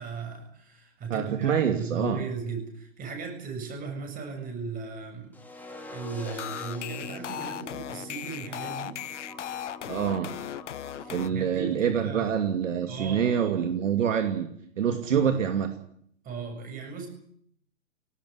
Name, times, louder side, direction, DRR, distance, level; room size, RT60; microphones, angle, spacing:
voice 1, 0.0-9.0 11.0-12.3 12.9-13.6 16.2-17.1, right 5 dB, 20° right, 4 dB, 7.6 m, -37 dB
voice 2, 1.1-2.2 9.9-10.3 11.1-15.7, right 8 dB, 65° right, 6 dB, 2.8 m, -26 dB
sound 1, 5.3-11.3, left 2 dB, 5° left, 2.8 m, -43 dB
sound 2, 6.2-11.3, left 11 dB, 60° left, 1.2 m, -37 dB
19.5 x 18.0 x 9.9 m, 0.67 s
hypercardioid pair, 140°, 40 cm